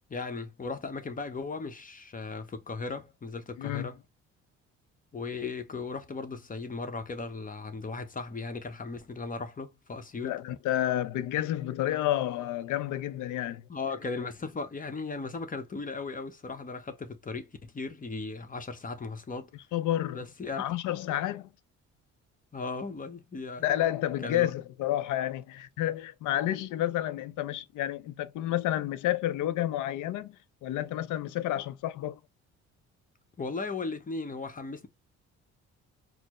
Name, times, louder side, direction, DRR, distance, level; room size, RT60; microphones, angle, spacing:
voice 1, 0.1-4.0 5.1-10.4 13.7-19.5 20.1-20.7 22.5-23.8 24.2-24.5 33.4-34.9, left 4 dB, 30° left, 0.9 m, -37 dB
voice 2, 3.6-3.9 10.2-13.6 19.7-20.2 20.6-21.5 23.6-32.2, left 13 dB, 80° left, 0.5 m, -30 dB
4.3 x 2.1 x 3.0 m
cardioid pair, 90°, 30 cm